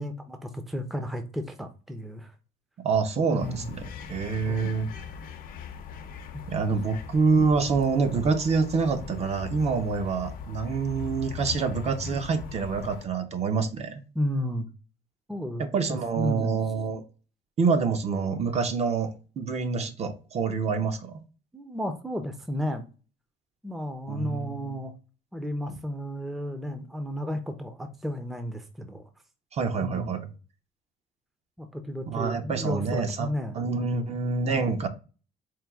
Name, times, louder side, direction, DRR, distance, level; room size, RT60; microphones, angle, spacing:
voice 1, 0.0-2.3 3.2-3.7 4.5-4.8 6.3-6.5 14.1-14.7 15.3-16.6 21.5-22.9 23.6-24.9 25.3-29.1 29.8-30.3 31.6-33.6, left 1 dB, ahead, 0.5 m, -33 dB
voice 2, 2.8-4.9 6.5-14.0 15.6-17.0 17.6-21.2 24.1-24.7 29.5-30.2 32.1-33.3 33.5-34.9, right 5 dB, 40° right, 0.7 m, -26 dB
sound 1, 3.4-13.1, left 7 dB, 55° left, 0.6 m, -40 dB
4.5 x 2.2 x 3.4 m
cardioid pair, 110°, 17 cm